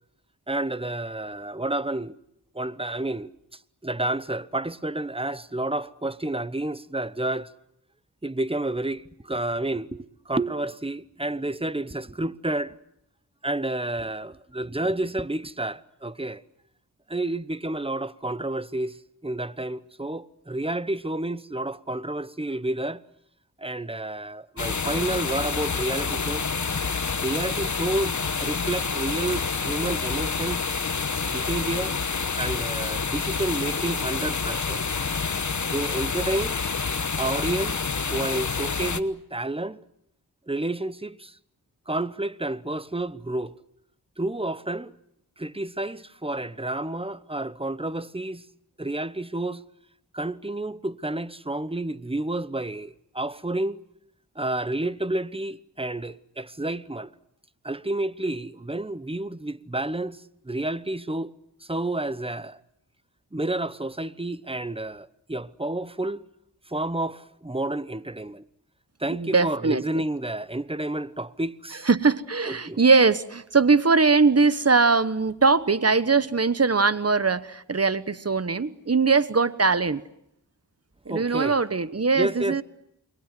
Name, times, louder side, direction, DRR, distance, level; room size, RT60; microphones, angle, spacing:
voice 1, 0.5-2.2 2.5-7.5 8.2-12.8 13.4-16.4 17.1-23.0 23.6-26.5 27.2-30.7 31.3-32.0 32.3-34.8 35.6-36.6 37.2-39.8 40.5-41.4 41.9-43.5 44.2-44.9 45.4-48.4 48.8-49.6 50.1-53.8 54.3-57.1 57.6-61.3 61.6-62.6 63.3-66.2 66.7-68.4 69.0-71.9 72.5-72.8 81.1-81.6 82.2-82.6, right 2 dB, 15° right, 1.0 m, -30 dB
sound 1, 24.6-39.0, left 5 dB, 45° left, 1.2 m, -28 dB
voice 2, 69.1-70.0 71.9-80.0 81.1-82.6, right 4 dB, 35° right, 1.2 m, -21 dB
28.5 x 22.5 x 7.7 m
cardioid pair, 45°, 40 cm